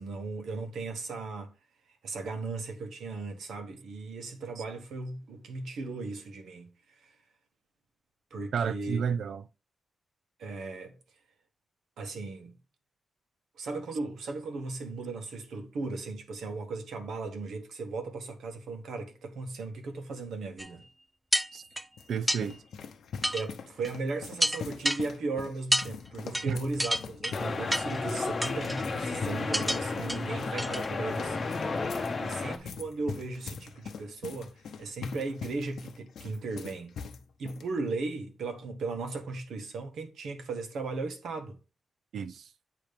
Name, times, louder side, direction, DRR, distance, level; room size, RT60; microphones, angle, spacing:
voice 1, 0.0-1.5 2.0-6.7 7.0-7.1 8.3-9.0 10.4-11.0 12.0-12.6 13.6-20.9 23.2-31.4 31.6-31.9 32.2-36.9 37.4-41.6, right 3 dB, 85° right, 1.3 m, -37 dB
voice 2, 8.5-9.4 21.5-21.6 22.1-22.6 26.5-26.6 42.1-42.5, right 7 dB, 70° right, 0.4 m, -31 dB
sound 1, 20.6-20.7 21.3-21.8 22.3-22.4 23.2-23.4 23.8-23.9 24.4-25.0 25.7-25.9 26.3-26.5 26.8-27.4 27.7-28.0 28.4-28.8 29.5-29.8 30.1-30.2 30.6-30.9 31.2-31.3, equal, 5° right, 0.3 m, -28 dB
sound 2, 21.5-37.7, left 6 dB, 80° left, 0.8 m, -43 dB
sound 3, 27.3-32.6, left 3 dB, 35° left, 0.7 m, -32 dB
8.6 x 3.0 x 5.1 m
wide cardioid pair, 160°, 0 cm